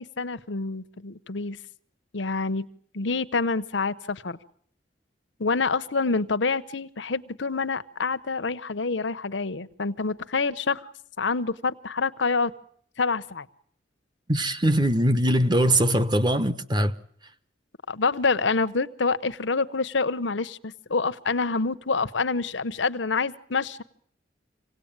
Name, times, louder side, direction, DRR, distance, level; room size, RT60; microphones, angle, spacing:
voice 1, 0.0-1.6 2.1-2.7 2.9-4.4 5.4-10.8 11.2-12.5 13.0-13.5 17.9-23.8, left 4 dB, 80° left, 1.0 m, -27 dB
voice 2, 14.3-16.9, right 1 dB, 25° right, 1.0 m, -21 dB
26.5 x 18.0 x 8.9 m
head